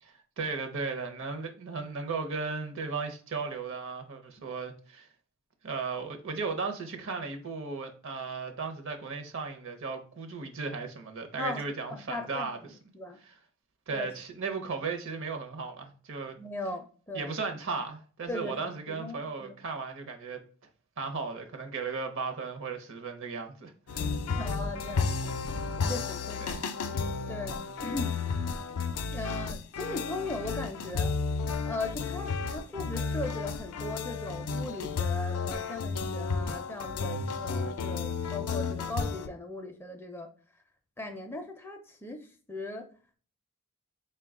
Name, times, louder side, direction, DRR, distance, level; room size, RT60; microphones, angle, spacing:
voice 1, 0.0-5.1 5.6-12.8 13.2-13.3 13.9-16.4 17.1-20.4 21.0-24.2 26.4-26.7, right 4 dB, 60° right, 0.7 m, -36 dB
voice 2, 11.4-13.2 13.9-14.1 16.4-17.3 18.3-19.6 24.1-25.6 25.9-26.4 27.3-28.2 29.1-31.1 31.7-40.3 41.0-42.2 42.5-42.8, left 2 dB, 10° left, 0.4 m, -38 dB
sound 1, 23.9-39.3, left 4 dB, 80° left, 0.4 m, -32 dB
4.4 x 2.2 x 3.5 m
head